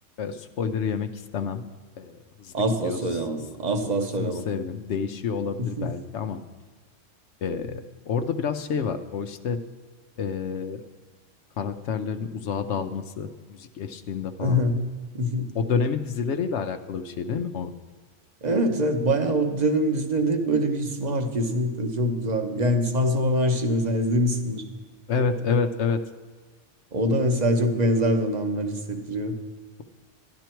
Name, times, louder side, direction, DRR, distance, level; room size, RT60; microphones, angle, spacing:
voice 1, 0.2-1.7 2.0-3.0 3.8-3.9 4.2-6.4 7.4-9.6 10.2-10.8 11.6-14.6 15.5-17.7 25.1-26.0, left 6 dB, 70° left, 8 dB, 0.9 m, -29 dB
voice 2, 2.5-4.5 5.6-5.9 14.4-14.8 15.1-15.5 18.4-24.6 26.9-29.4, equal, 35° right, 6 dB, 1.1 m, -24 dB
12.0 x 11.5 x 4.5 m, 1.5 s
omnidirectional pair, 1.3 m